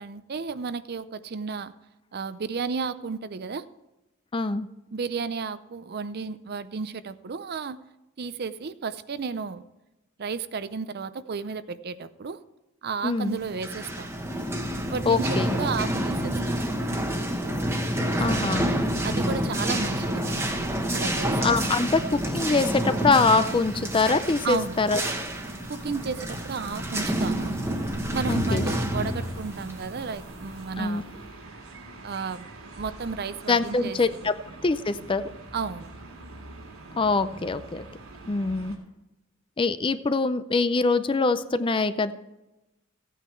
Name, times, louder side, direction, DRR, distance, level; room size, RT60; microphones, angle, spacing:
voice 1, 0.0-1.7 2.1-3.7 4.9-7.8 8.2-9.6 10.2-12.4 12.8-14.1 14.9-16.7 18.3-18.4 19.0-20.6 20.9-21.4 24.4-24.8 25.7-27.6 28.1-31.0 32.0-32.5 32.8-34.3 35.5-35.9, right 5 dB, 50° right, 14 dB, 0.5 m, -33 dB
voice 2, 4.3-4.7 13.0-13.4 15.1-15.6 18.2-18.7 21.4-25.0 28.3-28.7 30.8-31.0 33.5-34.3 34.6-35.2 37.0-37.8 38.3-38.8 39.6-42.1, left 3 dB, 25° left, 12 dB, 0.4 m, -24 dB
sound 1, 13.4-30.8, right 1 dB, 10° right, 1.1 m, -28 dB
sound 2, 21.4-38.8, right 2 dB, 90° right, 2.9 m, -45 dB
15.5 x 9.1 x 4.5 m, 0.98 s
head